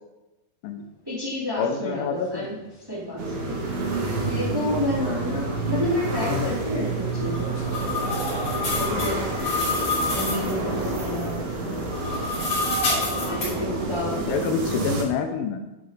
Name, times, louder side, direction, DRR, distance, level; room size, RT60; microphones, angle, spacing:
voice 1, 1.0-2.5 2.9-3.5 4.2-7.6 8.7-9.3 10.1-11.5 13.2-14.2, left 1 dB, 10° right, -8 dB, 1.3 m, -29 dB
voice 2, 1.6-2.6 8.7-9.0 14.3-15.6, left 6 dB, 85° left, 5 dB, 3.3 m, -27 dB
sound 1, 1.6-1.7 2.0-14.7, right 1 dB, 60° left, 3.9 m, -42 dB
sound 2, 3.2-15.0, right 2 dB, 70° right, 3.5 m, -29 dB
sound 3, 7.1-10.5 11.8-13.5, left 3 dB, 40° left, 3.5 m, -28 dB
9.6 x 4.0 x 5.0 m, 1.0 s
omnidirectional pair, 5.4 m